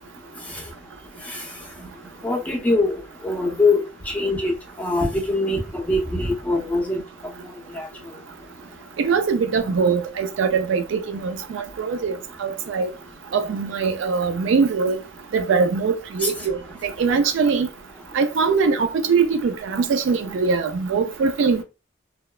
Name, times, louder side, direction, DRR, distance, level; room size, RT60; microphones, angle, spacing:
voice 1, 2.2-4.5 4.8-7.0 7.7-7.9, left 2 dB, 10° left, 0.6 m, -23 dB
voice 2, 9.0-12.9 13.3-15.0 15.3-17.7 18.1-21.6, right 5 dB, 70° right, 0.3 m, -22 dB
2.9 x 2.0 x 2.3 m
head